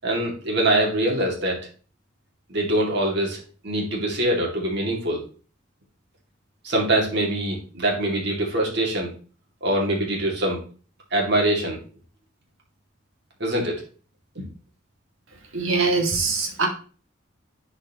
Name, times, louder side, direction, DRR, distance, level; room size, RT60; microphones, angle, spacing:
voice 1, 0.0-1.6 2.5-3.4 3.6-5.2 6.6-9.1 9.6-10.6 11.1-11.8 13.4-13.8 14.4-14.5, right 1 dB, 55° right, -1 dB, 2.4 m, -23 dB
voice 2, 15.5-16.7, right 4 dB, 90° right, 1 dB, 2.0 m, -22 dB
10.5 x 4.9 x 3.0 m, 0.38 s
head